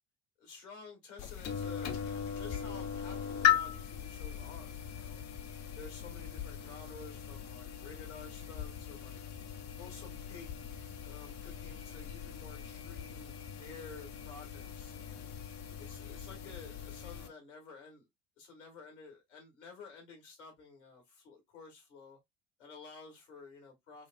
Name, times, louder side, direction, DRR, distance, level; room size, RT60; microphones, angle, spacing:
voice 1, 0.4-5.2 5.7-9.2 9.8-10.5 11.0-15.3 15.8-18.1 18.4-22.2 22.6-24.1, left 4 dB, 80° left, 1.7 m, -52 dB
sound 1, 1.2-17.3, left 9 dB, 50° left, 0.8 m, -38 dB
4.9 x 2.3 x 2.4 m
figure-of-eight pair, 60°, 35 cm